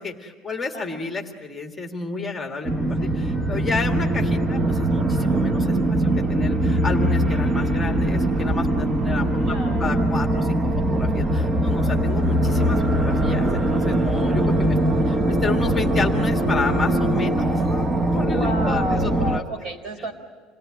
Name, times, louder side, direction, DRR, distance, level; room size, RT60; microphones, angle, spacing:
voice 1, 0.0-14.8 15.1-19.4, left 3 dB, 10° left, 2 dB, 1.8 m, -31 dB
sound 1, 2.7-19.4, right 1 dB, 20° right, 1.0 m, -21 dB
voice 2, 9.5-10.0 14.8-15.4 18.2-20.1, right 1 dB, 55° right, 6 dB, 4.4 m, -32 dB
27.5 x 18.5 x 9.5 m, 1.4 s
cardioid pair, 135°, 0 cm